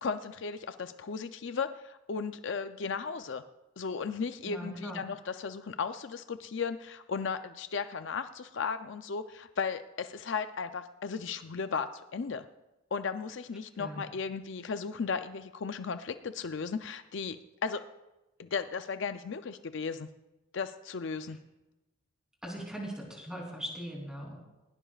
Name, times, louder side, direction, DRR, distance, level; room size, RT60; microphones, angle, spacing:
voice 1, 0.0-3.4 3.8-12.4 12.9-17.4 17.6-17.8 18.4-20.1 20.5-21.4, left 5 dB, 60° left, 9 dB, 0.5 m, -35 dB
voice 2, 4.4-5.0 13.8-14.1 22.4-24.4, right 1 dB, 5° right, -2 dB, 3.2 m, -40 dB
20.0 x 17.0 x 2.4 m, 1.0 s
head